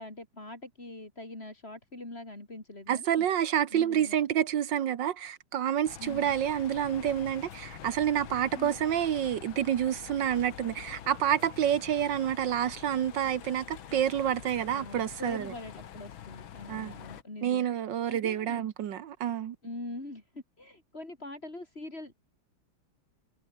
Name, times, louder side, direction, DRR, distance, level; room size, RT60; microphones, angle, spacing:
voice 1, 0.0-3.3 3.7-4.2 6.0-6.3 8.5-8.7 14.7-17.7 18.1-18.6 19.6-22.2, left 2 dB, 30° left, 4.9 m, -43 dB
voice 2, 2.9-15.5 16.7-16.9 17.4-19.6, right 10 dB, 65° right, 1.6 m, -28 dB
sound 1, 5.8-17.2, left 9 dB, 75° left, 2.1 m, -46 dB
omnidirectional pair, 2.2 m